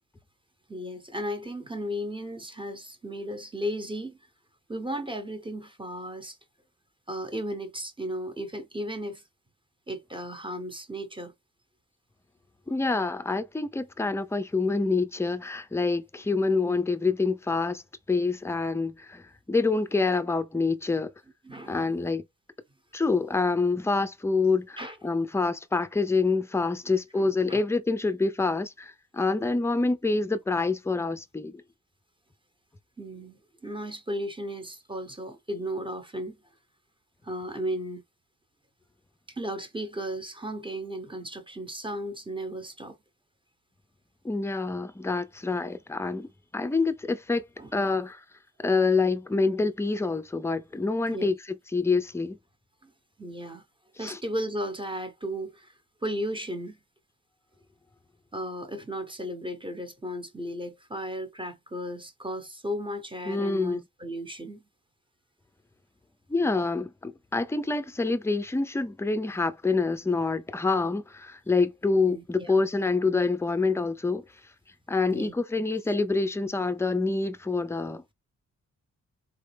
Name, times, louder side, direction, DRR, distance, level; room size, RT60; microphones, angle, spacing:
voice 1, 0.7-4.2 4.7-6.4 7.1-9.2 9.9-11.3 21.4-22.1 24.8-25.0 27.2-27.6 33.0-36.4 37.2-38.0 39.4-43.0 47.6-47.7 51.1-51.3 52.8-52.9 53.2-53.6 54.0-55.7 56.0-56.8 58.3-64.6 72.1-72.5 75.1-75.3, equal, 15° right, 1.0 m, -35 dB
voice 2, 12.7-17.8 18.1-21.1 21.6-22.2 22.9-31.6 44.2-47.4 47.7-48.2 48.6-52.4 54.0-54.2 63.3-63.8 66.3-74.2 74.9-78.1, left 3 dB, 10° left, 0.5 m, -26 dB
4.0 x 3.3 x 3.4 m
cardioid pair, 130°, 29 cm